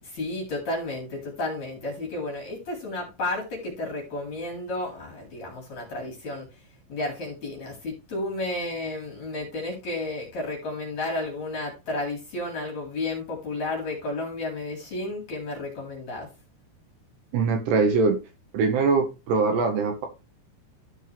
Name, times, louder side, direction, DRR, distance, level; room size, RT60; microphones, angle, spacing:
voice 1, 0.0-6.5 6.9-16.3, left 2 dB, 45° left, 2.9 m, -32 dB
voice 2, 17.3-18.2 18.5-20.1, right 4 dB, 70° right, 2.9 m, -22 dB
13.5 x 4.5 x 3.3 m
omnidirectional pair, 5.6 m